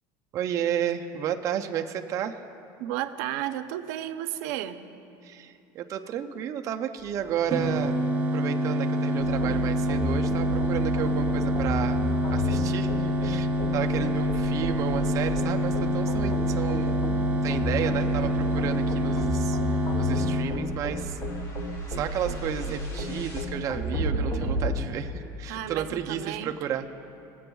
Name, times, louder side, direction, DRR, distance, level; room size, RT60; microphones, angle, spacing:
voice 1, 0.3-2.4 5.2-8.0 8.3-12.0 12.3-13.5 13.7-17.0 17.4-19.6 20.0-21.2 21.9-26.9, right 9 dB, 35° right, 5 dB, 0.4 m, -32 dB
voice 2, 2.8-4.8 24.1-24.6 25.5-26.5, right 12 dB, 85° right, 10 dB, 0.5 m, -33 dB
sound 1, 7.5-20.4, equal, 15° right, 1.0 m, -26 dB
sound 2, 9.2-24.7, equal, 35° left, 1.2 m, -32 dB
22.0 x 7.7 x 2.3 m, 2.7 s
cardioid pair, 155°, 9 cm